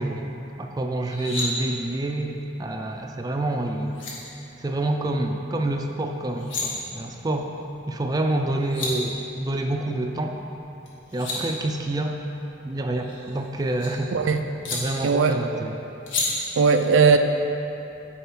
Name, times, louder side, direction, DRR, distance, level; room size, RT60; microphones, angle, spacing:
voice 1, 0.0-4.0 4.6-7.5 7.9-10.4 11.1-12.2 12.6-14.3 14.7-15.9, right 1 dB, 20° right, 3 dB, 0.4 m, -27 dB
sound 1, 1.0-1.5 3.5-3.6 3.9-4.1 6.2-6.6 8.3-8.4 8.6-8.9 10.9-11.4 12.9-13.9 14.6-14.8 16.1-16.3, left 3 dB, 85° left, 1.5 m, -31 dB
voice 2, 15.0-15.6 16.6-17.2, right 5 dB, 85° right, 6 dB, 0.5 m, -19 dB
6.7 x 4.8 x 6.2 m, 3.0 s
head